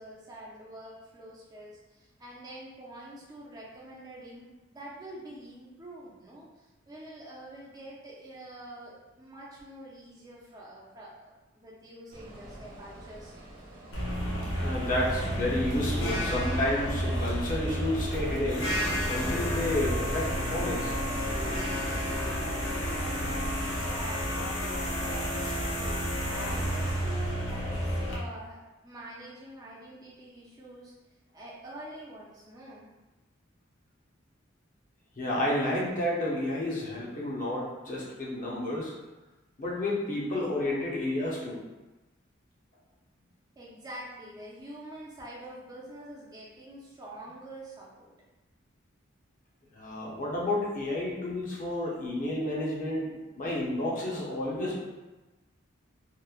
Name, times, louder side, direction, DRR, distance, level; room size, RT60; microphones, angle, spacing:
voice 1, 0.0-13.5 22.8-26.0 26.3-30.9 31.3-32.9 43.6-48.2, right 1 dB, 20° right, -5 dB, 0.3 m, -46 dB
sound 1, 12.1-23.9, right 1 dB, 75° right, 0.8 m, -48 dB
sound 2, 13.9-28.2, equal, 80° left, 0.7 m, -31 dB
voice 2, 14.6-21.2 35.2-38.9 39.6-41.6 49.7-54.8, left 1 dB, 40° left, -5 dB, 0.6 m, -31 dB
2.9 x 2.0 x 2.3 m, 1.1 s
head